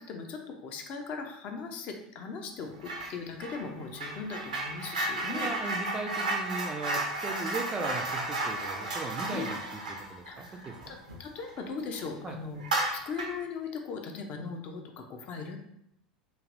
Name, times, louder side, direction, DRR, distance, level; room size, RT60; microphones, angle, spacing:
voice 1, 0.0-5.7 9.3-9.5 10.3-12.6 12.9-15.6, left 5 dB, 40° left, 3 dB, 0.4 m, -39 dB
sound 1, 2.8-3.1 3.4-11.6 11.9-12.1 12.6-13.4, right 2 dB, 75° right, 0.6 m, -33 dB
voice 2, 5.3-9.6 10.1-10.7 12.2-12.4, right 3 dB, 20° right, 4 dB, 0.3 m, -37 dB
3.1 x 2.4 x 2.5 m, 0.76 s
figure-of-eight pair, 75°, 4 cm